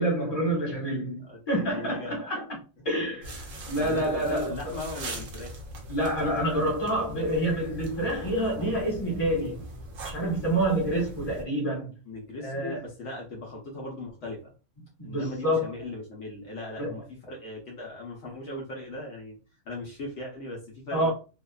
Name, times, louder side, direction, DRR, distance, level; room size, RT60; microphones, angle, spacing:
voice 1, 0.0-2.6 2.8-3.4 3.7-4.7 5.9-9.7 10.0-11.9 12.4-12.9 15.0-15.6 16.8-17.0 20.9-21.1, right 1 dB, 20° left, 1.2 m, -27 dB
voice 2, 1.3-2.2 3.8-5.6 12.1-14.5 15.0-19.4 19.6-21.1, left 2 dB, 70° left, 1.1 m, -38 dB
sound 1, 3.2-11.4, equal, 85° right, 1.1 m, -41 dB
3.0 x 2.1 x 2.3 m
omnidirectional pair, 1.3 m